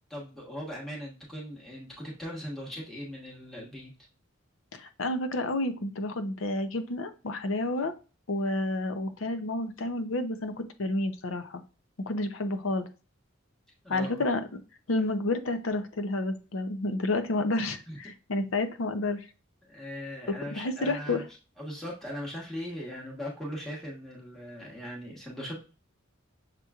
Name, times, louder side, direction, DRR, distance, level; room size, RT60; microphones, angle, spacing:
voice 1, 0.1-3.9 13.8-14.2 17.9-18.0 19.6-21.3 21.6-25.6, equal, ahead, -4 dB, 1.2 m, -39 dB
voice 2, 4.7-8.0 8.3-11.6 12.1-12.9 13.9-14.4 14.9-19.3 20.3-21.2, left 2 dB, 80° left, 8 dB, 0.6 m, -30 dB
6.6 x 3.0 x 2.3 m, 0.33 s
head